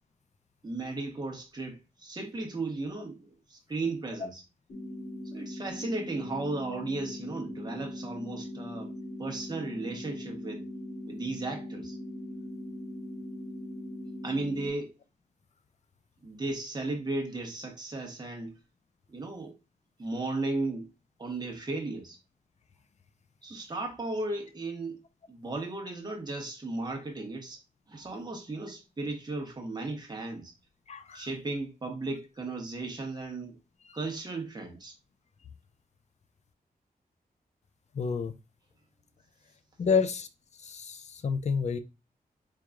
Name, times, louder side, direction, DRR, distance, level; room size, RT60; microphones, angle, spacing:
voice 1, 0.6-4.4 5.2-8.9 9.2-10.7 11.1-12.0 14.2-14.9 16.2-18.6 19.1-19.5 20.0-20.9 21.2-22.2 23.4-25.0 25.3-27.6 27.9-30.5 31.1-33.6 33.9-34.9, right 2 dB, 25° right, 1.0 m, -35 dB
sound 1, 4.7-14.7, left 1 dB, 85° left, 2.3 m, -40 dB
voice 2, 30.9-31.3 37.9-38.3 39.8-40.3 40.6-41.8, left 5 dB, 45° left, 0.4 m, -29 dB
4.6 x 3.7 x 2.2 m
wide cardioid pair, 170°, 16 cm